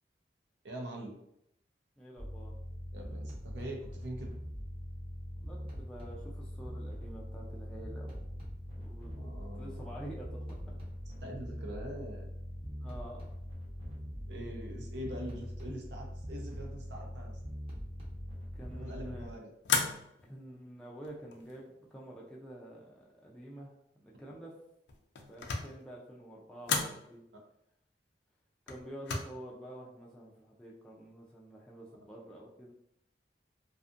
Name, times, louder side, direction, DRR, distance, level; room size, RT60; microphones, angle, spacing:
voice 1, 0.6-1.2 2.9-4.3 9.2-10.0 11.2-12.3 14.3-17.4 18.7-19.5, right 1 dB, 80° right, 0 dB, 0.6 m, -43 dB
voice 2, 2.0-2.5 5.4-8.3 8.8-10.8 12.8-13.3 18.5-19.3 20.3-24.6 25.3-27.2 28.7-32.7, right 1 dB, 5° left, -5 dB, 0.3 m, -48 dB
sound 1, 2.2-19.3, equal, 30° right, 0.8 m, -42 dB
sound 2, 19.6-20.3 21.0-21.6 24.9-25.8 26.6-27.0 28.7-29.2, left 5 dB, 80° left, 0.4 m, -33 dB
2.5 x 2.4 x 2.4 m, 0.77 s
head